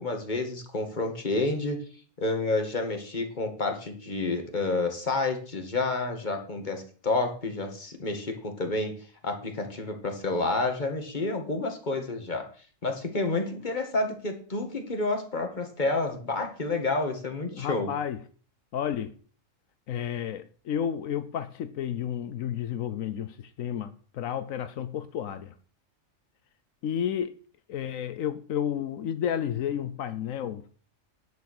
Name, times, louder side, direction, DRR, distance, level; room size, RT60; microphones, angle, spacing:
voice 1, 0.0-1.8 2.2-8.9 9.2-12.4 12.8-17.9, left 2 dB, 35° left, 2.1 m, -29 dB
voice 2, 17.5-18.2 18.7-19.1 19.9-25.5 26.8-27.3 27.7-30.6, left 9 dB, 80° left, 1.1 m, -31 dB
10.5 x 6.9 x 6.5 m
omnidirectional pair, 1.4 m